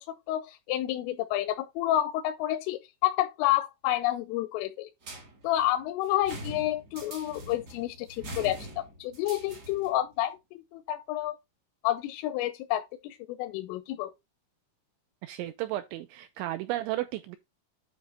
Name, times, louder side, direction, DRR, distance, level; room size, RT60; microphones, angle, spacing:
voice 1, 0.3-4.9 5.4-11.4 11.8-14.1, left 14 dB, 90° left, 3.2 m, -29 dB
sound 1, 5.0-10.0, right 1 dB, 55° right, 1.0 m, -43 dB
voice 2, 15.2-17.4, right 15 dB, 85° right, 2.7 m, -33 dB
9.3 x 3.1 x 6.2 m
omnidirectional pair, 5.7 m